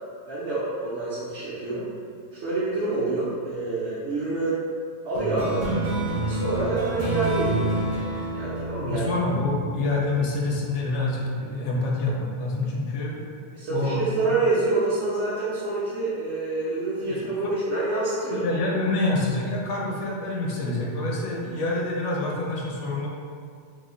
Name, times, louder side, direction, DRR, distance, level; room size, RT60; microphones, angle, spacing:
voice 1, 0.3-1.9 2.3-4.6 5.0-5.7 6.2-7.8 8.3-9.1 13.5-18.4, right 2 dB, 75° right, -9 dB, 0.9 m, -27 dB
sound 1, 5.1-10.1, right 2 dB, 45° right, 0.4 m, -28 dB
voice 2, 8.8-13.2 13.7-14.1 17.0-17.5 18.3-23.1, left 2 dB, 75° left, -2 dB, 0.9 m, -27 dB
3.0 x 2.0 x 3.6 m, 2.1 s
omnidirectional pair, 1.2 m